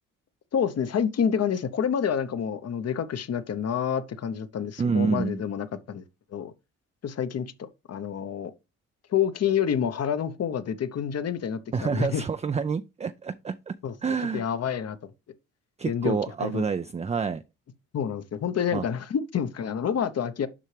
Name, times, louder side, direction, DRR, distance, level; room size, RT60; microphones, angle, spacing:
voice 1, 0.5-6.0 6.3-6.5 7.0-8.5 9.1-12.2 13.8-13.9 14.3-15.0 15.8-16.6 17.9-20.5, left 8 dB, 50° left, 0.9 m, -28 dB
voice 2, 4.8-5.4 11.7-13.8 14.0-14.4 15.8-17.4 18.7-18.8, right 5 dB, 20° right, 0.4 m, -28 dB
7.4 x 5.6 x 3.3 m
cardioid pair, 70°, 32 cm